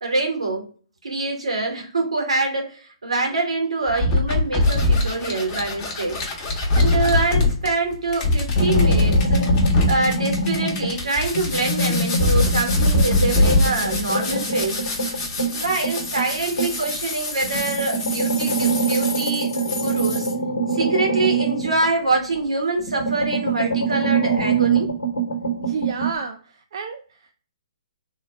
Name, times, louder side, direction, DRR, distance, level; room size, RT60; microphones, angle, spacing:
voice 1, 0.0-0.6 1.0-6.2 6.8-9.5 9.9-14.8 15.5-20.3 20.7-24.9, right 3 dB, 80° right, 2 dB, 1.2 m, -25 dB
sound 1, 3.9-20.3, left 2 dB, 25° left, 1.0 m, -23 dB
sound 2, 8.5-11.0 11.3-16.9 17.4-22.4 22.8-26.1, right 3 dB, 80° left, 1.0 m, -24 dB
voice 2, 25.6-27.3, right 5 dB, 55° right, 6 dB, 0.4 m, -31 dB
3.6 x 2.2 x 3.3 m, 0.41 s
figure-of-eight pair, 130°, 3 cm